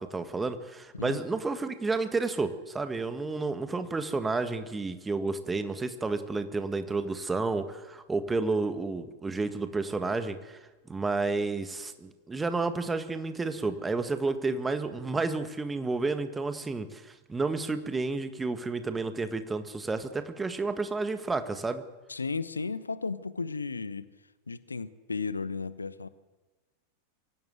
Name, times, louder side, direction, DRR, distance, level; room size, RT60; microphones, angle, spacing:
voice 1, 0.0-10.6 10.9-21.8, right 3 dB, 10° right, 9 dB, 1.7 m, -31 dB
voice 2, 22.1-24.1 24.5-26.1, left 4 dB, 75° left, 16 dB, 1.0 m, -34 dB
24.0 x 16.5 x 8.0 m, 1.2 s
figure-of-eight pair, 90°, 0 cm